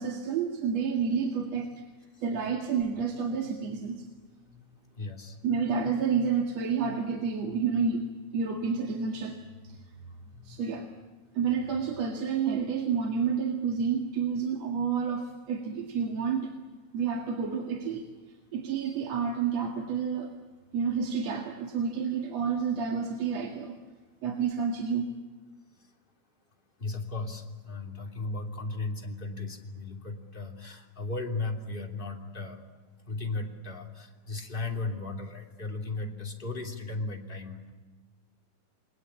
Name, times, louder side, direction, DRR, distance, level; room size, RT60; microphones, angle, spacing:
voice 1, 0.0-1.7 2.2-4.0 5.4-8.1 8.3-9.4 9.6-9.8 10.4-10.9 11.3-16.5 16.9-18.0 18.5-20.3 20.7-23.7 24.2-25.1, right 6 dB, 50° right, 2 dB, 2.8 m, -29 dB
voice 2, 5.0-5.4 26.8-32.6 33.1-37.7, left 3 dB, 15° left, 2 dB, 2.4 m, -36 dB
28.5 x 21.5 x 8.6 m, 1.4 s
omnidirectional pair, 4.3 m